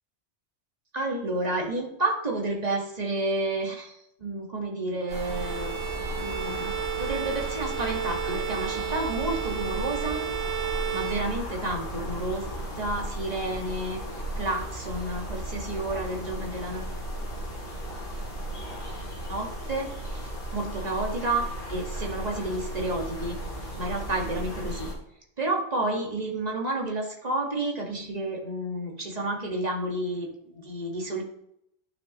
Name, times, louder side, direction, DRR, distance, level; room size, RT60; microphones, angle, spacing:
voice 1, 0.9-5.8 6.1-6.7 7.0-10.2 10.6-12.5 12.8-16.9 19.3-20.3 20.5-23.4 23.8-24.9 25.4-30.3 30.5-31.2, right 2 dB, 35° right, 0 dB, 1.8 m, -30 dB
sound 1, 5.1-24.9, right 1 dB, 50° left, 2.8 m, -35 dB
Bowed string instrument, 5.1-11.9, right 10 dB, 90° right, 1.2 m, -33 dB
11.0 x 6.8 x 3.0 m, 0.76 s
omnidirectional pair, 1.2 m